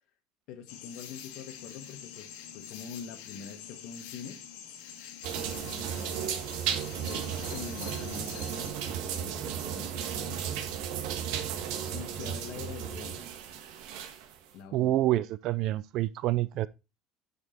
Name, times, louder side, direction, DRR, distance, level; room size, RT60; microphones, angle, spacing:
voice 1, 0.5-4.4 5.4-6.2 7.0-10.5 11.9-13.3 14.5-15.0, left 7 dB, 55° left, 1.5 m, -45 dB
sound 1, 0.7-8.7, left 9 dB, 85° left, 1.9 m, -46 dB
sound 2, 5.2-14.4, right 9 dB, 65° right, 1.5 m, -35 dB
voice 2, 14.7-16.7, right 15 dB, 45° right, 0.4 m, -27 dB
9.6 x 5.3 x 4.3 m
cardioid pair, 180°, 0 cm